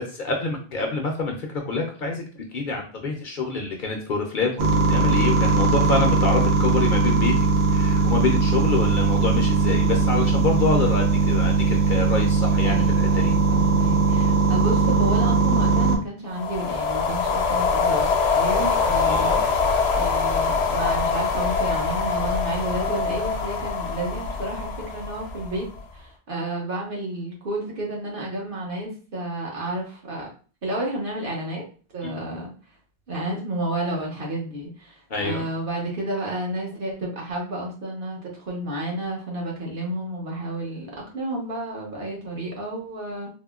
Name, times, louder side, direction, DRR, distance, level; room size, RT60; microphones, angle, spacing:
voice 1, 0.0-2.2 2.5-13.3 19.0-19.4 32.0-32.2 35.1-35.4, left 3 dB, 55° left, 1 dB, 0.7 m, -26 dB
sound 1, 4.6-16.0, right 4 dB, 90° right, 0.9 m, -20 dB
voice 2, 12.6-19.5 19.9-30.3 30.6-31.6 31.9-32.5 33.1-43.3, right 1 dB, 55° right, -2 dB, 1.1 m, -31 dB
sound 2, 16.3-25.8, left 5 dB, 85° left, 0.9 m, -24 dB
3.5 x 2.1 x 2.3 m, 0.38 s
omnidirectional pair, 1.1 m